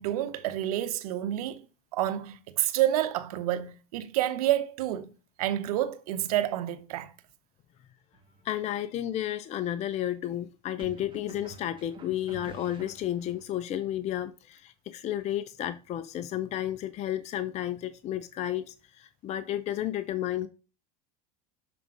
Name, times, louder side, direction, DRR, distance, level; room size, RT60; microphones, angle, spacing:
voice 1, 0.0-1.6 1.9-5.1 5.4-7.1, right 13 dB, 80° right, 0.9 m, -29 dB
sound 1, 8.1-8.4 10.8-13.5, right 3 dB, 25° right, 1.9 m, -49 dB
voice 2, 8.4-20.5, left 12 dB, 35° left, 0.5 m, -32 dB
6.9 x 3.7 x 4.7 m
supercardioid pair, 105°, 19 cm